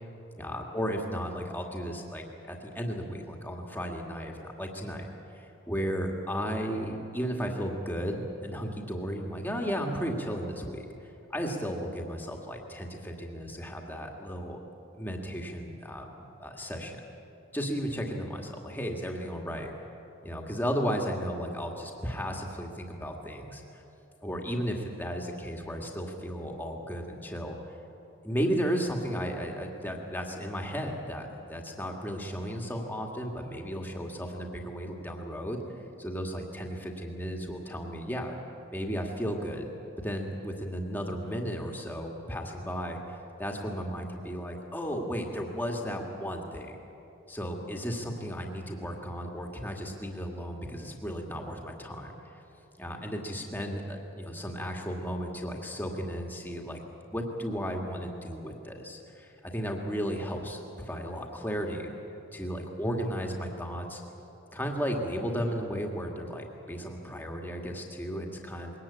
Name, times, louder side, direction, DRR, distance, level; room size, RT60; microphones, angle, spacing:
voice 1, 0.4-5.1 5.3-10.9 11.3-14.6 14.9-17.0 17.5-19.7 20.2-23.8 24.2-27.6 28.2-35.6 36.0-38.3 38.7-39.7 40.0-43.0 43.4-46.8 47.3-52.2 52.8-61.9 62.3-64.0 64.5-68.7, equal, 10° left, 1 dB, 2.0 m, -34 dB
22.0 x 18.5 x 8.7 m, 3.0 s
head